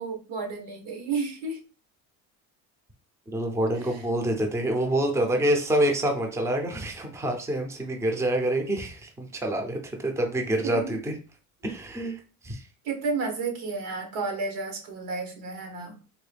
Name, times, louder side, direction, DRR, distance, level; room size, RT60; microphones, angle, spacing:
voice 1, 0.0-1.6 10.6-10.8 12.8-16.0, right 4 dB, 80° right, 3 dB, 1.3 m, -31 dB
voice 2, 3.3-11.1 11.6-12.7, right 1 dB, 5° right, 3 dB, 0.6 m, -27 dB
3.7 x 2.2 x 3.3 m, 0.35 s
cardioid pair, 110°, 38 cm